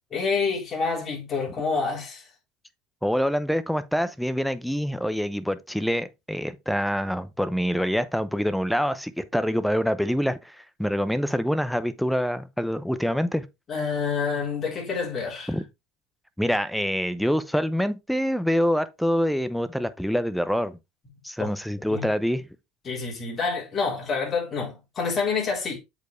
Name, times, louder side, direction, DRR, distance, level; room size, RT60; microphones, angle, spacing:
voice 1, 0.1-2.3 13.7-15.5 21.4-21.5 21.9-22.1 22.8-25.8, left 5 dB, 30° left, 4.1 m, -28 dB
voice 2, 3.0-13.5 15.5-15.6 16.4-20.8 21.2-22.4, equal, ahead, 0.7 m, -26 dB
7.8 x 4.7 x 3.3 m
supercardioid pair, 120°, 0 cm